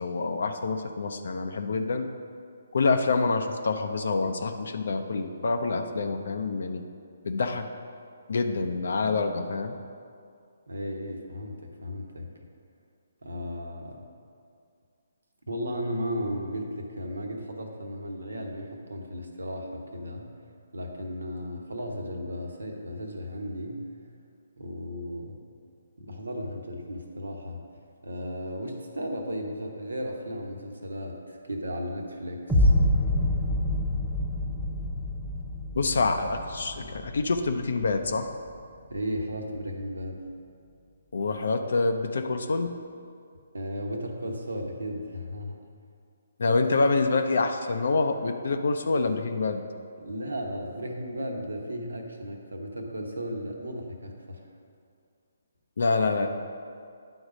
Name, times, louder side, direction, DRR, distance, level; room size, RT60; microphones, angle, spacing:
voice 1, 0.0-2.1 2.7-6.8 7.2-7.7 8.3-9.7 35.7-38.3 41.1-42.7 46.4-49.6 55.8-56.3, left 3 dB, 65° left, 6 dB, 0.5 m, -26 dB
voice 2, 10.7-12.3 13.2-14.0 15.5-20.3 20.7-23.9 24.6-25.4 26.0-27.6 28.0-32.7 38.9-40.3 43.5-45.6 50.0-54.4, equal, 80° right, 2 dB, 1.0 m, -35 dB
sound 1, 32.5-38.5, left 1 dB, 5° left, 0.8 m, -27 dB
9.8 x 3.9 x 5.0 m, 2.3 s
figure-of-eight pair, 140°, 0 cm